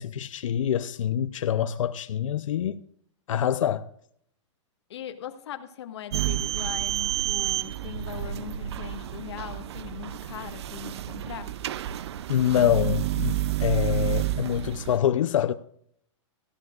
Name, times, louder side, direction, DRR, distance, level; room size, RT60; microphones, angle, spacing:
voice 1, 0.0-2.8 3.3-3.9 12.3-15.5, left 9 dB, 90° left, 0.6 m, -25 dB
voice 2, 4.9-11.5, left 10 dB, 60° left, 1.5 m, -40 dB
sound 1, 6.1-15.0, right 13 dB, 60° right, 0.5 m, -30 dB
17.5 x 15.0 x 2.4 m
supercardioid pair, 175°, 16 cm